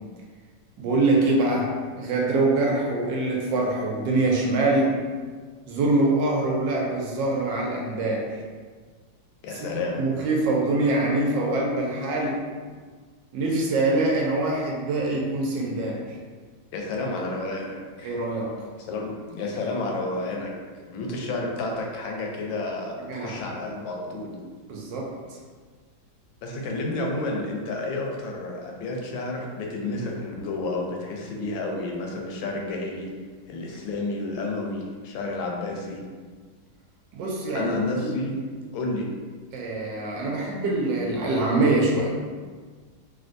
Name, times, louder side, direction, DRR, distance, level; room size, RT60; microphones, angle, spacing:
voice 1, 0.8-5.0 5.7-8.4 9.5-9.7 10.0-12.4 13.3-16.2 18.0-18.5 23.1-23.4 24.7-25.1 37.1-38.1 39.5-42.1, right 2 dB, 75° right, -2 dB, 1.2 m, -24 dB
voice 2, 9.4-10.1 16.7-18.1 18.9-20.5 20.9-24.4 26.4-33.2 33.5-36.1 37.5-38.5 38.7-39.1, left 2 dB, 80° left, 0 dB, 1.3 m, -30 dB
3.3 x 2.5 x 2.5 m, 1.5 s
omnidirectional pair, 2.1 m